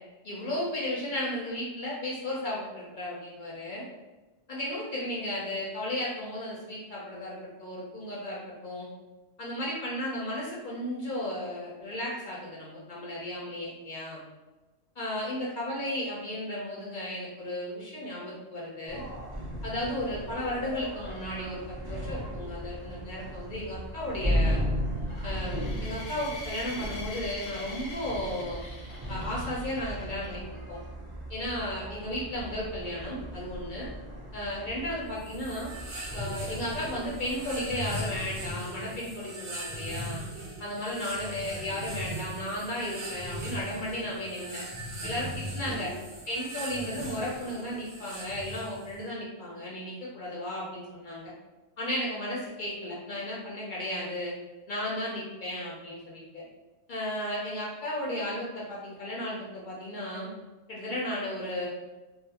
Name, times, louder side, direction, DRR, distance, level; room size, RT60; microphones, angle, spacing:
voice 1, 0.2-3.8 4.5-8.9 9.4-14.2 15.0-19.0 19.6-24.6 25.2-28.6 29.1-30.8 31.3-33.9 34.3-35.7 36.1-40.2 40.6-44.6 45.0-45.9 46.3-51.3 51.8-54.3 54.7-56.4 56.9-60.3 60.7-61.7, left 1 dB, 55° left, -5 dB, 0.5 m, -34 dB
sound 1, 18.9-38.5, equal, 35° right, 0.4 m, -36 dB
sound 2, 25.1-30.4, left 2 dB, 90° left, 1.0 m, -44 dB
sound 3, 35.2-49.0, right 1 dB, 50° right, 0.8 m, -39 dB
2.4 x 2.4 x 2.7 m, 1.1 s
omnidirectional pair, 1.3 m